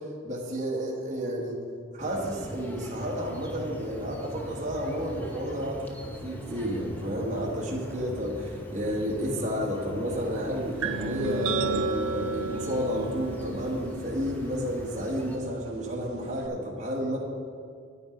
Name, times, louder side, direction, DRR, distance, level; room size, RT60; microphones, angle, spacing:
voice 1, 0.2-1.6 1.9-17.2, equal, 35° right, -4 dB, 1.5 m, -31 dB
sound 1, 2.0-15.4, equal, 10° left, 0.9 m, -41 dB
sound 2, 10.8-16.5, right 4 dB, 85° right, 0.6 m, -34 dB
9.6 x 9.0 x 5.0 m, 2.3 s
head